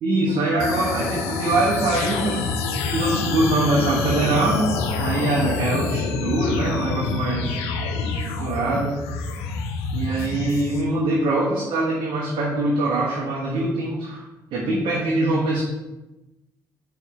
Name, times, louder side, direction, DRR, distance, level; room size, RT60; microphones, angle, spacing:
voice 1, 0.0-2.4 2.8-4.7 5.0-7.6 8.1-8.9 9.9-14.2 14.5-15.6, right 2 dB, 55° right, -4 dB, 1.3 m, -23 dB
sound 1, 0.6-10.8, left 4 dB, 70° left, 0.6 m, -27 dB
9.2 x 3.5 x 3.1 m, 1.0 s
figure-of-eight pair, 45°, 11 cm